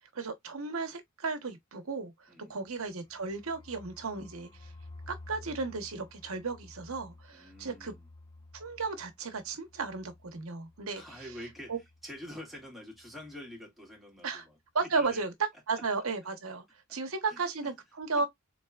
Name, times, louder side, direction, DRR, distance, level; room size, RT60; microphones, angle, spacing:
voice 1, 0.1-4.7 5.1-7.9 8.5-11.0 11.7-11.8 14.2-14.4 14.7-15.3 15.7-16.6 16.9-18.3, right 4 dB, 75° right, 1.0 m, -34 dB
voice 2, 2.3-2.6 7.3-8.1 10.9-11.8 12.0-15.2 15.7-15.8 16.9-17.0 17.3-17.4 18.2-18.3, left 1 dB, ahead, 1.8 m, -46 dB
sound 1, 2.5-12.3 12.5-12.6 12.9-13.4, left 2 dB, 20° left, 0.8 m, -53 dB
3.9 x 3.4 x 2.2 m
head